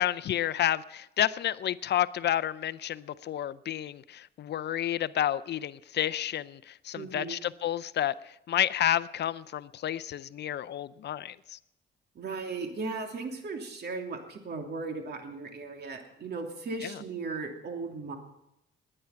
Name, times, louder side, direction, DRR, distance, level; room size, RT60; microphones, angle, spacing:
voice 1, 0.0-11.6, left 11 dB, 60° left, 0.5 m, -30 dB
voice 2, 7.0-7.5 12.1-18.2, right 3 dB, 55° right, 3.0 m, -37 dB
20.0 x 9.8 x 5.8 m
cardioid pair, 90°, 20 cm